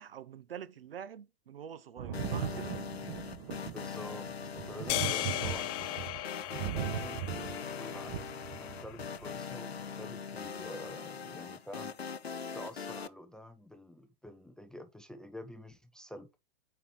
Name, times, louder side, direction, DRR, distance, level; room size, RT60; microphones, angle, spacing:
voice 1, 0.0-2.8, right 8 dB, 70° right, 0.7 m, -46 dB
Thunder, 2.0-9.3 10.4-10.5, right 10 dB, 40° right, 1.2 m, -39 dB
sound 1, 2.1-13.1, left 6 dB, 85° left, 0.6 m, -41 dB
voice 2, 3.7-4.3 4.6-6.0 6.9-7.3 7.8-11.9 12.5-16.3, left 1 dB, ahead, 0.4 m, -48 dB
sound 2, 4.9-9.3, left 16 dB, 35° left, 0.8 m, -37 dB
8.7 x 4.5 x 3.8 m
figure-of-eight pair, 105°, 30 cm